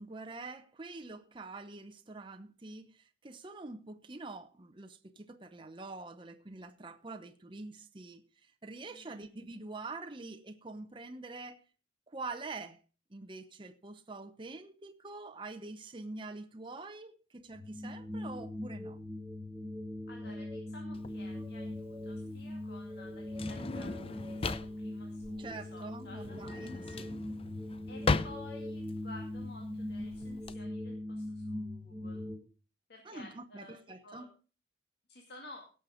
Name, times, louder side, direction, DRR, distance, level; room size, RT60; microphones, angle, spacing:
voice 1, 0.0-11.6 12.1-12.8 13.1-19.0 25.4-27.2 33.0-34.3, right 3 dB, 25° right, 0.8 m, -45 dB
voice 2, 8.9-9.3 20.1-26.4 27.9-32.3 32.9-33.8 34.0-34.3 35.1-35.7, left 2 dB, 60° left, 2.2 m, -53 dB
sound 1, 17.5-32.3, left 1 dB, 5° right, 2.5 m, -41 dB
Drawer open or close, 20.9-30.5, left 3 dB, 30° left, 0.5 m, -37 dB
17.5 x 6.6 x 5.1 m
head